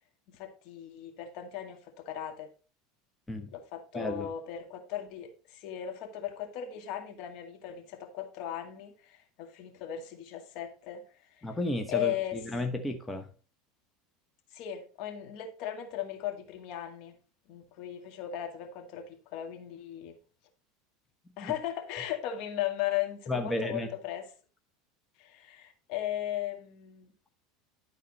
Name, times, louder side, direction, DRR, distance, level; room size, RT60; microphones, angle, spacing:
voice 1, 0.3-2.5 3.5-11.5 11.9-12.4 14.5-17.2 17.5-20.2 21.4-24.3 25.2-27.1, left 11 dB, 60° left, 2.0 m, -37 dB
voice 2, 3.9-4.3 11.4-13.3 21.4-21.5 23.3-23.9, left 1 dB, 10° left, 1.1 m, -33 dB
11.5 x 4.1 x 4.1 m
supercardioid pair, 110°, 0 cm